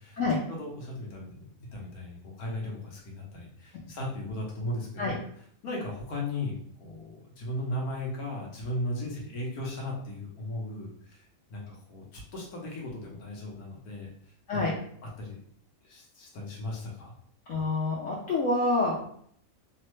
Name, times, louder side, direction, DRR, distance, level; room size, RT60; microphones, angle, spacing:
voice 1, 0.5-5.2 5.6-14.1 14.5-14.6 15.2-15.4 15.8-17.1, left 1 dB, 85° left, -2 dB, 1.3 m, -36 dB
voice 2, 17.5-19.1, left 2 dB, 65° left, -5 dB, 0.9 m, -27 dB
3.1 x 2.1 x 3.0 m, 0.63 s
omnidirectional pair, 1.5 m